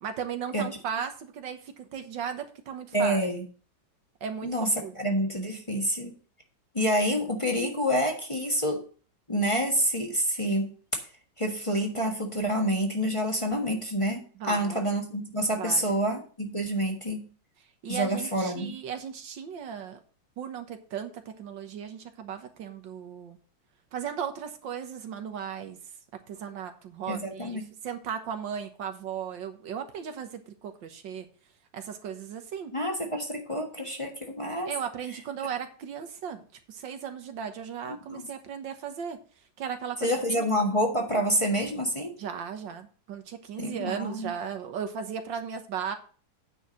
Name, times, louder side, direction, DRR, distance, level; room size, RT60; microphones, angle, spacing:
voice 1, 0.0-3.2 4.2-5.0 14.4-14.9 15.6-15.9 17.8-20.0 20.4-23.4 23.9-25.8 26.3-31.3 31.7-32.7 34.7-39.2 39.6-40.5 42.2-45.9, right 7 dB, 85° right, 7 dB, 1.9 m, -36 dB
voice 2, 2.9-3.4 4.4-4.7 4.9-6.1 6.7-8.8 9.3-10.7 11.4-17.3 17.9-18.7 27.1-27.6 32.7-34.7 37.9-38.3 40.0-42.1 43.6-44.3, equal, 20° left, 1 dB, 1.4 m, -28 dB
9.3 x 4.7 x 6.9 m, 0.40 s
omnidirectional pair, 1.9 m